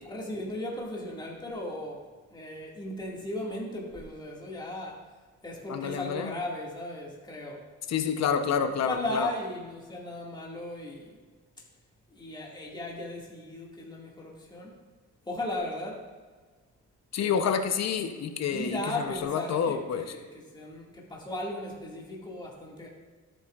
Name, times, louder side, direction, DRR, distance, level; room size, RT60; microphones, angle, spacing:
voice 1, 0.0-2.1 2.3-5.0 5.4-7.6 8.7-11.2 12.1-14.7 15.3-16.0 17.2-17.4 18.5-22.9, left 1 dB, 15° left, -3 dB, 2.1 m, -36 dB
voice 2, 5.7-6.3 7.9-9.3 17.1-20.1, left 7 dB, 60° left, 7 dB, 0.9 m, -28 dB
12.5 x 8.1 x 2.5 m, 1.4 s
cardioid pair, 90°, 30 cm